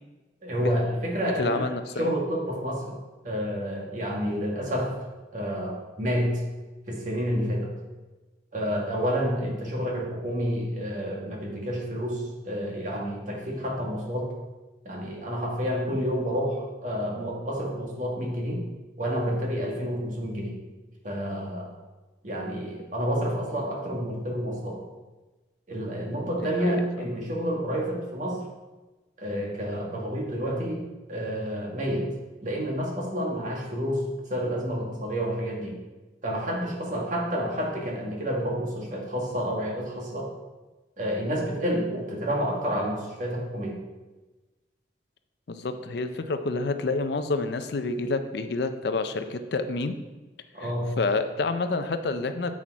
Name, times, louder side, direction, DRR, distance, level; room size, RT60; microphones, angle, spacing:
voice 1, 0.4-1.7 2.0-2.9 3.2-5.0 5.3-6.4 6.9-7.7 8.5-14.3 14.8-18.6 19.0-20.5 21.0-21.7 22.2-24.8 25.7-28.4 29.2-32.1 32.4-35.8 36.2-40.3 41.0-43.8 50.5-50.9, equal, 40° right, -1 dB, 1.5 m, -29 dB
voice 2, 1.4-2.1 15.9-16.0 26.4-26.9 45.5-49.9 50.6-50.7 51.0-52.5, left 3 dB, 55° left, 9 dB, 0.5 m, -28 dB
7.3 x 6.3 x 4.5 m, 1.2 s
head